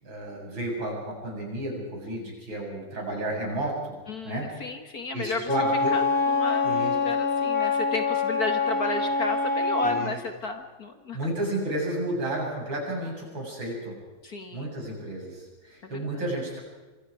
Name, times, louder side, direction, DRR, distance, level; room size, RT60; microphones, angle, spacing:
voice 1, 0.0-3.9 4.2-4.5 5.1-5.9 6.6-6.9 9.8-10.2 11.1-14.0 14.5-16.6, right 1 dB, 65° right, -1 dB, 8.3 m, -32 dB
voice 2, 4.1-5.5 5.9-11.2 14.2-14.7, left 3 dB, 45° left, 6 dB, 2.0 m, -33 dB
Wind instrument woodwind instrument, 5.5-10.1, left 4 dB, 65° left, 4.5 m, -25 dB
26.5 x 25.5 x 5.0 m, 1.2 s
omnidirectional pair, 2.3 m